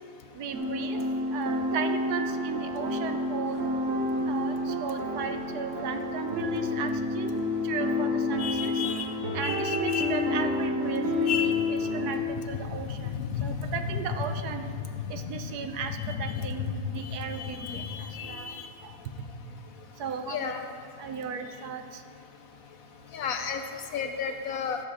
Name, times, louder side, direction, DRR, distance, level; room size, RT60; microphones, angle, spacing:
voice 1, 0.3-1.0 1.3-3.6 4.3-7.4 7.6-8.8 9.3-14.7 15.1-18.5 18.8-18.9 20.0-20.5 21.0-22.0, right 6 dB, 70° right, 6 dB, 1.2 m, -36 dB
sound 1, 0.5-12.2, left 2 dB, 55° right, 1.5 m, -29 dB
voice 2, 8.4-9.1 9.4-10.1 11.3-11.5 13.1-13.7 16.3-16.5 17.4-18.7 20.3-20.6 23.1-23.6 23.9-24.8, left 7 dB, 65° left, 6 dB, 1.0 m, -32 dB
12.5 x 7.7 x 4.9 m, 2.6 s
omnidirectional pair, 1.8 m